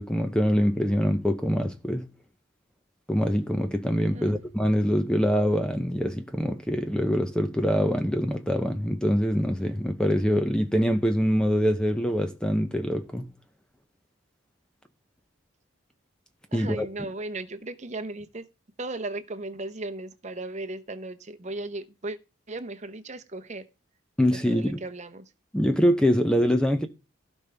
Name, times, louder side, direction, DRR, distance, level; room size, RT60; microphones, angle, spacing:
voice 1, 0.0-2.1 3.1-13.3 16.5-16.9 24.2-24.8 25.5-26.9, equal, 5° left, 0.6 m, -24 dB
voice 2, 4.1-4.4 16.5-18.5 18.8-22.2 22.5-23.7 24.3-25.3, right 2 dB, 35° right, 0.8 m, -36 dB
16.0 x 5.3 x 3.4 m
head